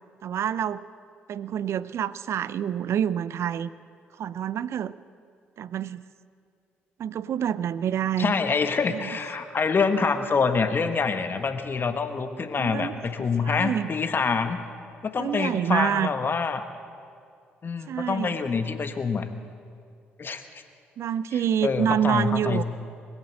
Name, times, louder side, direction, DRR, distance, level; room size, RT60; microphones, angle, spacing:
voice 1, 0.2-0.8 1.3-3.7 4.2-4.9 5.6-6.0 7.0-8.3 8.9-9.0 9.4-9.5 12.6-13.9 15.2-16.1 17.9-18.4 21.0-22.6, right 9 dB, 60° right, 18 dB, 0.4 m, -27 dB
voice 2, 8.2-14.6 15.0-16.6 17.6-19.3 20.2-20.4 21.6-22.6, left 5 dB, 40° left, 8 dB, 1.4 m, -26 dB
21.0 x 8.9 x 7.8 m, 2.3 s
hypercardioid pair, 45°, 5 cm